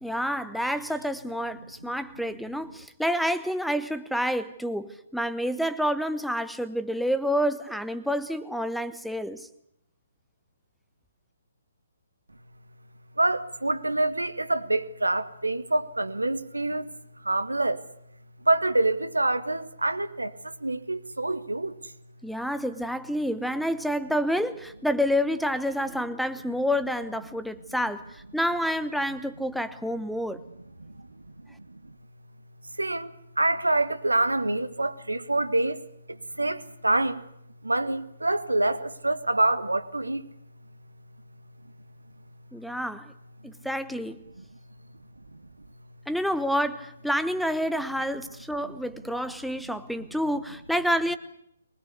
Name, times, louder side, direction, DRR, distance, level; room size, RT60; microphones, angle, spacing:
voice 1, 0.0-9.5 22.2-28.0 28.3-30.4 42.5-43.1 43.4-44.2 46.1-51.2, equal, ahead, 0.9 m, -28 dB
voice 2, 13.2-16.9 17.2-17.8 18.4-21.8 31.7-31.8 32.8-35.8 36.1-37.2 37.6-40.2 48.6-48.8, right 2 dB, 80° right, 1.7 m, -26 dB
23.5 x 20.0 x 8.3 m
figure-of-eight pair, 135°, 0 cm